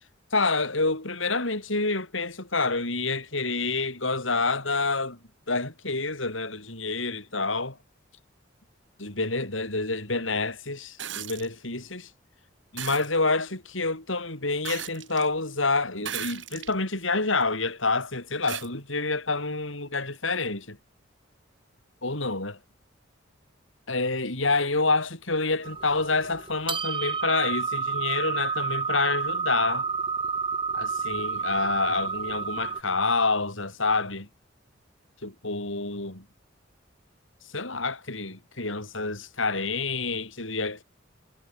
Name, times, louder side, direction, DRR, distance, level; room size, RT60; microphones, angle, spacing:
voice 1, 0.3-5.2 5.5-7.8 9.0-12.1 12.7-20.8 22.0-22.5 23.9-29.9 30.7-34.3 35.2-36.3 37.5-40.8, left 3 dB, 85° left, 6.9 m, -28 dB
sound 1, 11.0-11.5 12.8-13.1 14.6-15.3 16.0-16.8 17.4-17.5 18.5-18.7 20.1-20.2, right 10 dB, 70° right, 3.2 m, -36 dB
sound 2, 25.6-32.8, right 5 dB, 25° right, 2.2 m, -30 dB
head